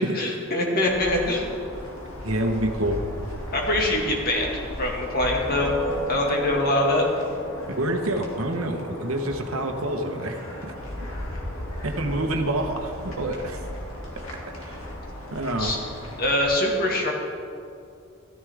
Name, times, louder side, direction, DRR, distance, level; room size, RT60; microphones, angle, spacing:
voice 1, 0.1-1.5 3.5-4.5 4.8-5.7 6.1-7.1 15.6-15.8 16.2-17.1, left 1 dB, 45° left, -1 dB, 2.0 m, -23 dB
sound 1, 0.8-16.5, equal, 65° left, 2.4 m, -35 dB
voice 2, 2.2-3.0 7.7-10.7 11.8-13.6 14.6-14.8 15.3-15.7, right 1 dB, 75° right, 4 dB, 1.2 m, -27 dB
14.0 x 13.5 x 3.6 m, 2.4 s
head